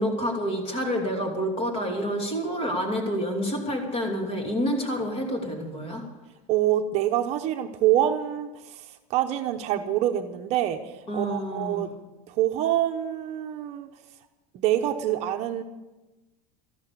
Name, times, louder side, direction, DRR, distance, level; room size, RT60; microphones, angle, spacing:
voice 1, 0.0-6.0 11.1-11.9, equal, 30° left, 3 dB, 2.9 m, -28 dB
voice 2, 6.5-11.9 12.3-13.9 14.5-15.6, right 12 dB, 40° right, 5 dB, 0.9 m, -26 dB
13.5 x 12.0 x 6.8 m, 1.1 s
supercardioid pair, 165°, 17 cm